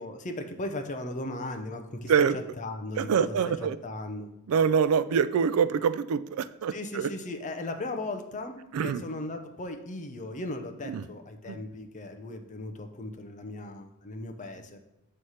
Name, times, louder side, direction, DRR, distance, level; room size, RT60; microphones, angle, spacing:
voice 1, 0.0-2.3 2.6-4.3 6.7-14.8, left 2 dB, 35° left, 6 dB, 0.7 m, -37 dB
voice 2, 3.0-3.8 4.5-7.1 8.7-9.0 10.9-11.0 11.5-11.6, right 6 dB, 70° right, 15 dB, 0.3 m, -25 dB
7.9 x 3.3 x 5.6 m, 0.87 s
head